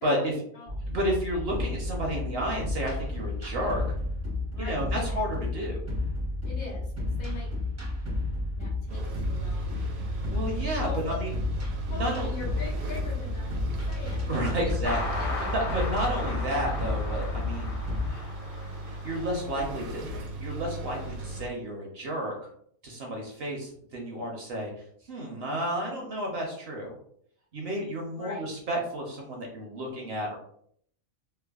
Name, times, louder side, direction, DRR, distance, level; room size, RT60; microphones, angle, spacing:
voice 1, 0.0-0.7 4.5-4.8 6.4-7.5 8.5-9.8 10.8-11.1 11.9-14.7 15.2-15.5 28.1-28.5, left 4 dB, 85° left, -4 dB, 1.5 m, -42 dB
sound 1, 0.7-18.1, left 2 dB, 20° right, 0.4 m, -32 dB
voice 2, 0.9-3.8 4.6-5.8 9.8-11.3 11.9-12.3 14.3-17.7 18.1-18.4 18.8-22.4 22.8-24.7 25.1-26.9 27.5-30.4, equal, 60° right, 0 dB, 0.7 m, -32 dB
sound 2, 8.9-21.5, right 2 dB, 90° right, 1.0 m, -38 dB
sound 3, 14.8-19.6, left 2 dB, 50° left, 0.7 m, -37 dB
3.2 x 2.0 x 2.3 m, 0.65 s
omnidirectional pair, 1.4 m